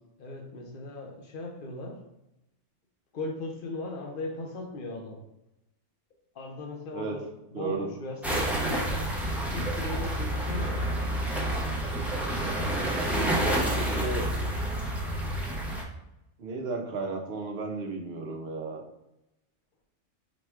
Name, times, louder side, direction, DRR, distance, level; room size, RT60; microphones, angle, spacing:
voice 1, 0.2-2.0 3.1-5.2 6.3-7.2 7.5-9.0 9.5-10.9, left 2 dB, 50° left, 2 dB, 0.8 m, -38 dB
voice 2, 7.5-7.9 13.6-14.3 16.4-18.8, right 3 dB, 60° right, 1 dB, 0.9 m, -34 dB
sound 1, 8.2-15.8, right 1 dB, ahead, 0.4 m, -29 dB
4.1 x 2.2 x 4.4 m, 0.91 s
omnidirectional pair, 1.2 m